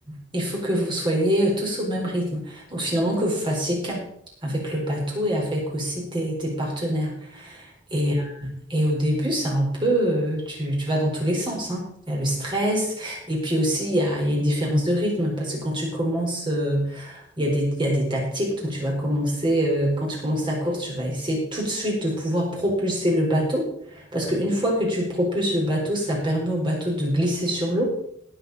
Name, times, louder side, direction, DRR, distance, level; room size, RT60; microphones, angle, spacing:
voice 1, 0.3-4.1 4.4-7.6 7.9-27.9, equal, 25° right, -2 dB, 4.3 m, -25 dB
19.0 x 7.4 x 4.1 m, 0.71 s
head